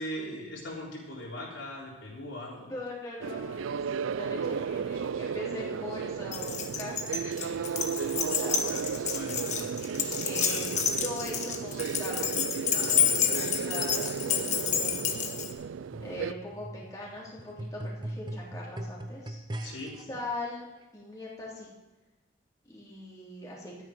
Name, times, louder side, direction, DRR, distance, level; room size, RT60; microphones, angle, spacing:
voice 1, 0.0-2.7 9.1-9.7 10.0-10.3 19.6-20.0, equal, 75° left, -4 dB, 3.8 m, -40 dB
voice 2, 2.7-3.8 4.1-8.7 10.2-12.3 12.9-15.2 16.0-19.4 20.1-20.7 20.9-21.7 22.6-23.8, left 1 dB, 15° left, -7 dB, 3.4 m, -41 dB
sound 1, 3.2-16.3, right 6 dB, 85° right, 0.4 m, -34 dB
Keys jangling, 6.3-15.5, left 8 dB, 35° left, 1.2 m, -29 dB
sound 2, 15.9-20.0 20.8-20.9, right 1 dB, 20° right, 0.9 m, -40 dB
12.5 x 10.0 x 5.1 m, 1.1 s
head